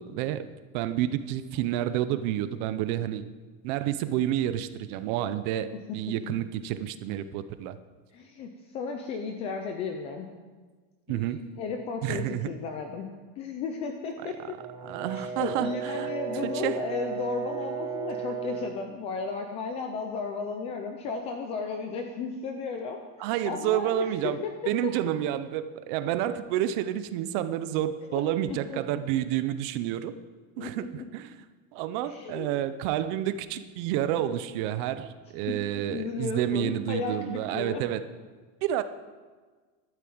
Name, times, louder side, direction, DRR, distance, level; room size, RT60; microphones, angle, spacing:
voice 1, 0.0-3.2 3.6-7.8 11.1-11.4 12.0-12.5 14.8-16.1 16.4-16.8 17.5-17.6 23.2-30.1 30.6-31.3 31.7-38.0 38.6-38.8, right 12 dB, 40° right, 12 dB, 0.6 m, -29 dB
voice 2, 8.1-10.3 11.1-14.4 15.1-24.8 28.1-28.8 30.6-31.1 32.0-32.5 35.5-35.6 35.8-37.8, left 4 dB, 15° left, 4 dB, 0.3 m, -34 dB
Brass instrument, 14.6-18.8, right 6 dB, 15° right, 1.3 m, -35 dB
12.0 x 9.3 x 7.8 m, 1.4 s
supercardioid pair, 170°, 40 cm